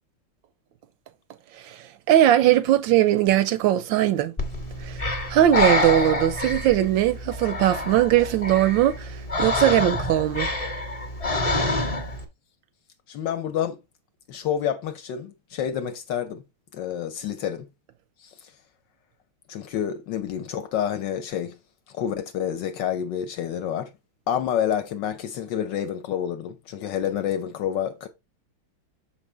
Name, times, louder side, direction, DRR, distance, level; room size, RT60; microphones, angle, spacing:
voice 1, 1.6-4.3 4.8-5.0 5.3-10.5, right 12 dB, 75° right, 1.1 m, -20 dB
Breathing, 4.4-12.2, left 2 dB, 25° left, 0.8 m, -27 dB
voice 2, 13.1-13.8 14.3-16.4 16.7-17.7 18.2-18.5 19.5-21.6 21.9-23.9 24.3-28.1, left 9 dB, 65° left, 1.3 m, -28 dB
6.9 x 5.5 x 3.2 m
omnidirectional pair, 2.4 m